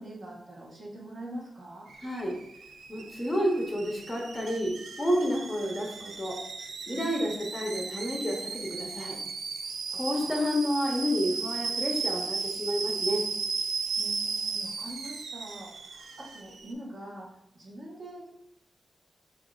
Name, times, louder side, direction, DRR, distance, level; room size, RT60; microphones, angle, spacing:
voice 1, 0.0-1.9 6.9-7.3 9.8-10.5 14.0-18.3, right 1 dB, 45° right, -3 dB, 1.0 m, -44 dB
Alarm / Boiling, 1.9-16.7, right 4 dB, 70° right, 0.4 m, -35 dB
voice 2, 2.0-2.4 2.9-6.4 6.9-9.2 9.9-13.3, equal, 20° left, -2 dB, 0.7 m, -30 dB
6.4 x 2.4 x 2.4 m, 0.78 s
wide cardioid pair, 145°, 0 cm